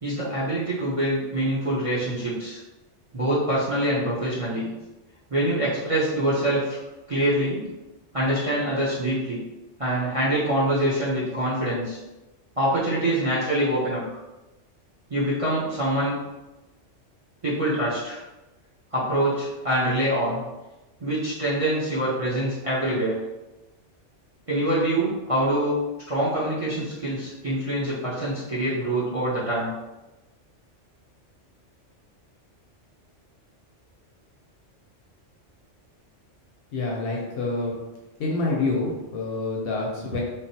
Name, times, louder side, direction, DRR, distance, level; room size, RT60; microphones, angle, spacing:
voice 1, 0.0-2.6 3.1-4.7 5.3-6.8 7.1-7.6 8.1-9.4 9.8-12.0 12.6-14.0 15.1-16.1 17.4-18.2 18.9-20.4 21.0-23.2 24.5-25.7 26.1-29.7, right 1 dB, 35° right, -9 dB, 0.6 m, -25 dB
voice 2, 36.7-37.8 38.2-40.2, left 3 dB, 60° left, -3 dB, 0.7 m, -27 dB
3.1 x 2.0 x 2.7 m, 1.0 s
omnidirectional pair, 1.2 m